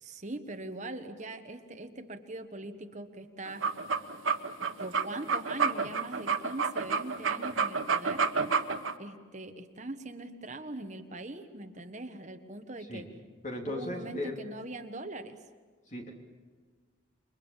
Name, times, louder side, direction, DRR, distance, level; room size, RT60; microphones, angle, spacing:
voice 1, 0.0-3.7 4.8-8.3 9.0-13.1 13.7-15.3, right 2 dB, 35° right, 6 dB, 1.4 m, -41 dB
sound 1, 3.5-8.9, right 5 dB, 80° right, 1.3 m, -29 dB
voice 2, 13.4-14.4 15.9-16.1, left 1 dB, 35° left, 1 dB, 3.4 m, -37 dB
28.5 x 23.5 x 7.4 m, 1.5 s
head